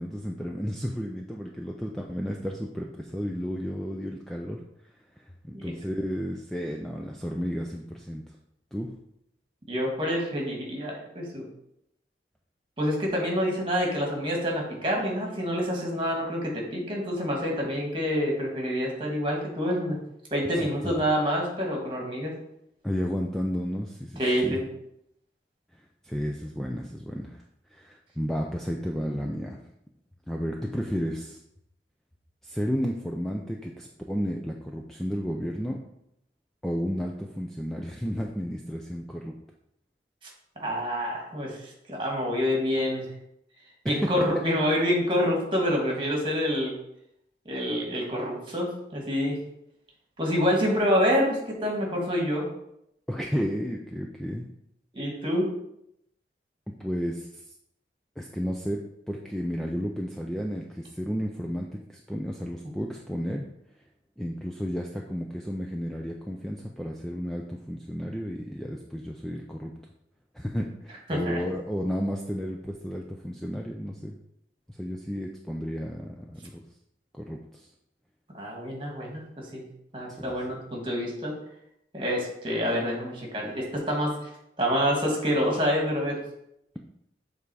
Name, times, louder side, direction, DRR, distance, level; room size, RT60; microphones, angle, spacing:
voice 1, 0.0-4.6 5.2-8.2 8.7-8.9 20.6-20.9 22.8-24.6 25.7-27.4 27.7-29.6 30.3-31.4 32.4-35.8 36.6-39.3 43.8-44.4 53.1-54.5 56.7-57.4 58.2-63.4 64.2-69.7 70.3-74.1 74.7-76.6 77.1-77.7 80.1-80.4, equal, ahead, 0 dB, 0.4 m, -32 dB
voice 2, 9.7-11.4 12.8-20.0 20.3-22.3 24.2-24.7 40.5-43.1 43.8-46.7 47.4-49.4 50.2-52.4 54.9-55.5 71.1-71.4 78.3-79.6 79.9-81.3 81.9-84.1 84.6-86.2, equal, 30° right, -1 dB, 1.7 m, -27 dB
7.3 x 3.4 x 4.8 m, 0.78 s
head